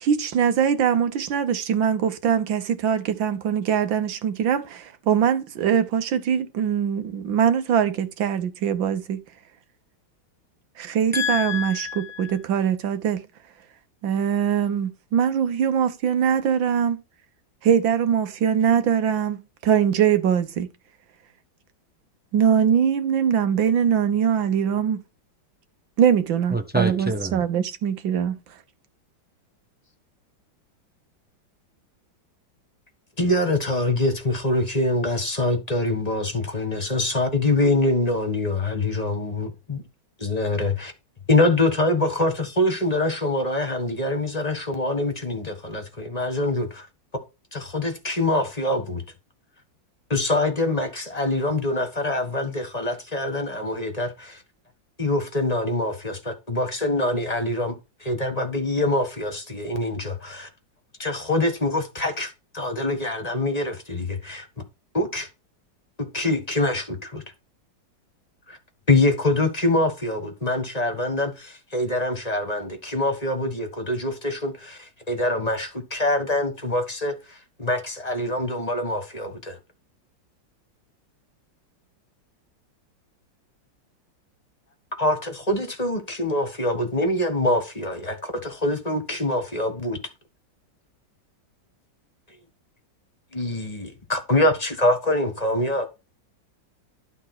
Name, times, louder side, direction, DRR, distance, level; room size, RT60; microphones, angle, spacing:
voice 1, 0.0-9.2 10.8-13.2 14.0-17.0 17.6-20.7 22.3-25.0 26.0-28.4, right 8 dB, 85° right, 1.8 m, -22 dB
voice 2, 11.1-12.4 26.5-27.4, left 1 dB, 10° right, 0.7 m, -27 dB
voice 3, 33.2-39.8 40.2-40.9 41.3-46.9 47.5-49.0 50.1-54.4 55.0-60.5 61.0-64.5 64.9-65.3 66.1-67.2 68.5-68.6 68.9-79.6 85.0-90.0 93.3-95.9, left 2 dB, 20° left, 1.4 m, -24 dB
12.0 x 4.0 x 6.0 m
omnidirectional pair, 2.1 m